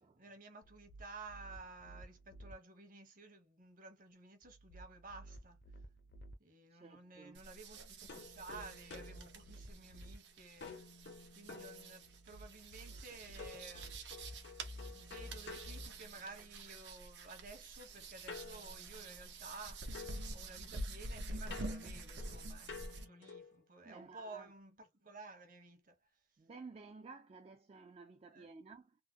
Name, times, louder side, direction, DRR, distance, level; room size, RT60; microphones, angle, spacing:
voice 1, 0.2-5.6 6.4-10.8 11.3-14.0 14.9-19.9 20.3-25.9 28.3-28.5, right 3 dB, 50° right, 1.0 m, -53 dB
sound 1, 0.6-2.5 4.4-6.3 8.2-10.2 12.0-15.9, equal, 60° left, 0.6 m, -53 dB
voice 2, 6.7-7.4 23.8-24.5 26.4-29.0, right 4 dB, 35° right, 0.4 m, -54 dB
sound 2, 7.3-23.1, right 2 dB, 85° right, 0.9 m, -48 dB
sound 3, 8.1-10.2 10.6-12.4 13.4-16.6 18.3-19.7 19.9-23.6, left 4 dB, 85° left, 0.9 m, -53 dB
3.6 x 2.1 x 2.8 m
head